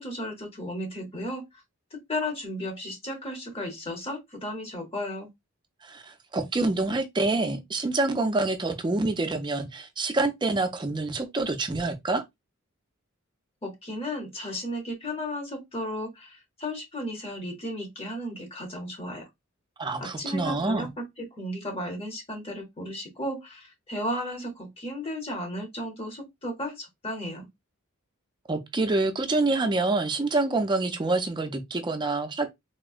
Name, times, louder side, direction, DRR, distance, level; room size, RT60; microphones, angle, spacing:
voice 1, 0.0-1.6 2.1-5.3 13.6-19.3 20.0-27.5, left 1 dB, 30° left, 0.8 m, -34 dB
voice 2, 5.8-12.2 19.8-20.9 28.5-32.5, right 2 dB, 20° right, 0.5 m, -27 dB
3.6 x 2.1 x 2.3 m
head